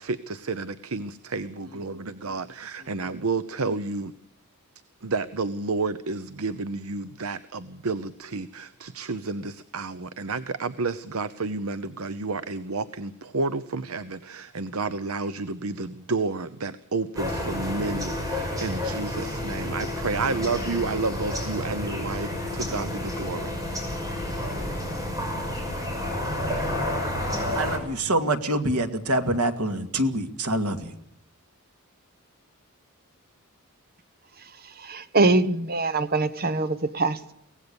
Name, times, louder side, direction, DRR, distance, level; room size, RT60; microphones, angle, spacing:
voice 1, 0.0-4.1 5.0-23.5, right 3 dB, 75° right, 14 dB, 0.8 m, -31 dB
sound 1, 17.2-27.8, left 1 dB, 15° right, 5.9 m, -30 dB
voice 2, 27.6-31.0, right 1 dB, 90° right, 7 dB, 2.3 m, -26 dB
voice 3, 34.8-37.3, right 2 dB, 45° right, 13 dB, 1.2 m, -23 dB
24.0 x 18.0 x 7.0 m, 0.72 s
head